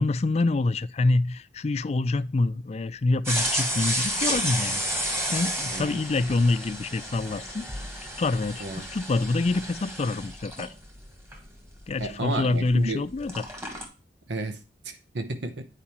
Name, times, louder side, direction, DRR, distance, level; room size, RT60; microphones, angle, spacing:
voice 1, 0.0-7.6 8.2-10.7 11.9-13.4, left 3 dB, 40° left, 0.4 m, -26 dB
sound 1, 3.2-12.8 13.1-13.8, equal, 15° right, 1.6 m, -31 dB
voice 2, 12.0-13.1 14.3-15.6, right 2 dB, 85° right, 0.9 m, -32 dB
8.6 x 4.9 x 4.3 m
head